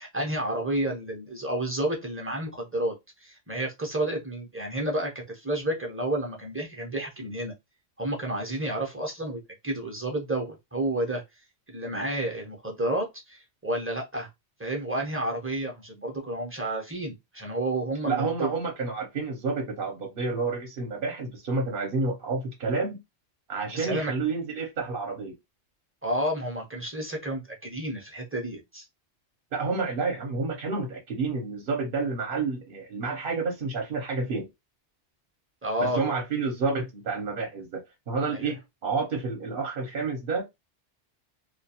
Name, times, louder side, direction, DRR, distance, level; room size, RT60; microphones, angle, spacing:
voice 1, 0.0-2.9 3.2-7.5 8.0-11.2 11.7-14.3 14.6-18.5 23.7-24.1 26.0-28.8 35.6-36.0 38.3-38.5, right 1 dB, 15° right, 0.4 m, -30 dB
voice 2, 18.1-23.0 23.5-25.3 29.5-34.5 35.8-40.4, right 4 dB, 55° right, 0.8 m, -29 dB
2.3 x 2.3 x 2.7 m
omnidirectional pair, 1.2 m